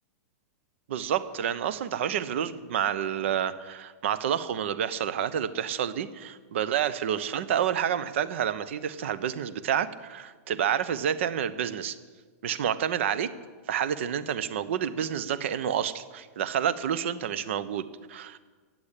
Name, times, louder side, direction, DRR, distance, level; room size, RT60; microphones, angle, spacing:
voice 1, 0.9-12.0 12.4-13.3 13.7-18.4, right 9 dB, 50° right, 15 dB, 0.9 m, -29 dB
15.5 x 8.7 x 10.0 m, 1.5 s
supercardioid pair, 180°, 8 cm